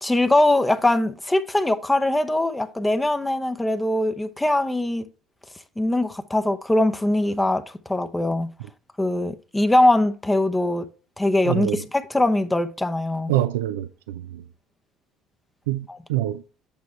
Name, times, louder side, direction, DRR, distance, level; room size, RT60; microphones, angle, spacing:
voice 1, 0.0-5.0 5.8-7.6 7.9-8.5 9.0-10.9 11.2-13.3 15.9-16.0, left 1 dB, 10° left, 0.8 m, -21 dB
voice 2, 11.5-11.8 13.3-14.4 15.7-16.4, right 14 dB, 85° right, 0.4 m, -26 dB
8.4 x 5.9 x 3.2 m
hypercardioid pair, 65°, 0 cm